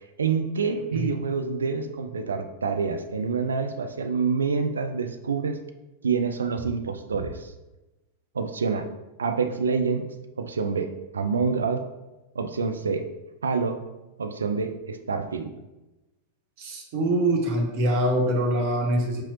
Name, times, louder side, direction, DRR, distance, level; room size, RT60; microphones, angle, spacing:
voice 1, 0.2-5.6 6.0-7.5 8.3-8.9 9.2-10.0 10.4-11.8 12.4-13.1 13.4-13.8 14.2-15.5, right 5 dB, 70° right, 7 dB, 0.3 m, -27 dB
voice 2, 16.6-19.2, right 1 dB, 45° right, 1 dB, 0.9 m, -24 dB
4.6 x 2.9 x 3.0 m, 1.0 s
figure-of-eight pair, 90°, 0 cm